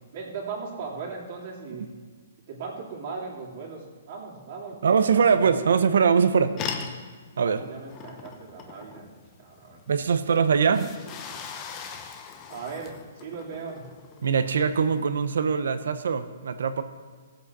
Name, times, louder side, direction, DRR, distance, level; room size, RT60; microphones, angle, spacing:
voice 1, 0.1-1.9 2.5-5.6 7.3-9.8 12.5-12.9 13.2-13.8, right 4 dB, 40° right, -3 dB, 2.6 m, -38 dB
voice 2, 4.8-6.5 7.4-7.6 9.9-10.9 14.2-16.8, right 6 dB, 75° right, 11 dB, 0.9 m, -22 dB
sound 1, 6.6-15.0, left 6 dB, 20° left, 0.7 m, -40 dB
17.5 x 7.8 x 4.2 m, 1.5 s
hypercardioid pair, 175°, 0 cm